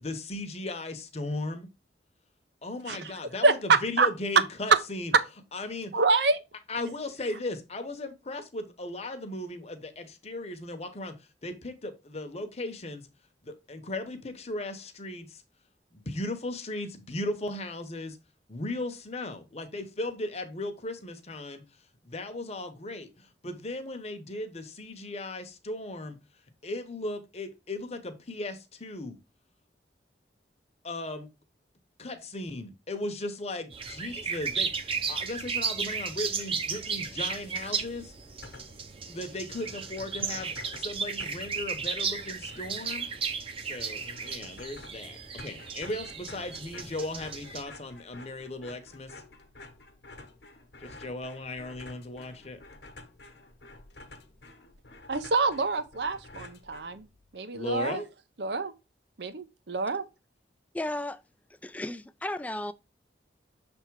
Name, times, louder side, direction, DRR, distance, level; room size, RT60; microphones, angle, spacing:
voice 1, 0.0-1.7 2.6-5.1 5.5-5.9 6.7-13.1 13.4-15.4 15.9-18.2 18.5-21.6 22.0-26.2 26.6-29.2 30.8-31.3 32.0-38.1 39.1-43.1 43.6-49.2 50.8-52.6 57.5-58.1, left 2 dB, 35° left, 0.9 m, -37 dB
voice 2, 3.4-4.1 5.9-6.4 55.1-57.0 57.3-58.0 58.4-58.7 59.2-60.0, right 3 dB, 70° right, 0.8 m, -26 dB
sound 1, 33.7-47.6, right 5 dB, 30° right, 0.8 m, -34 dB
sound 2, 38.2-38.9 39.2-39.3 39.5-57.3, left 2 dB, 65° left, 1.1 m, -50 dB
voice 3, 60.7-61.2 61.6-62.7, left 1 dB, 10° left, 0.3 m, -34 dB
6.7 x 3.5 x 4.6 m
head